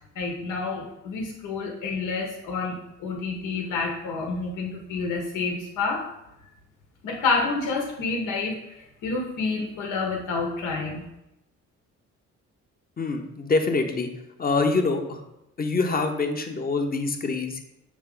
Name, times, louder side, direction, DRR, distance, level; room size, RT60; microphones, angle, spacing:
voice 1, 0.1-6.1 7.0-11.0, left 4 dB, 85° left, 0 dB, 1.2 m, -29 dB
voice 2, 13.0-14.1 14.4-15.2 15.6-17.6, left 3 dB, 30° left, 5 dB, 0.9 m, -25 dB
7.1 x 3.6 x 3.8 m, 0.88 s
cardioid pair, 90°, 30 cm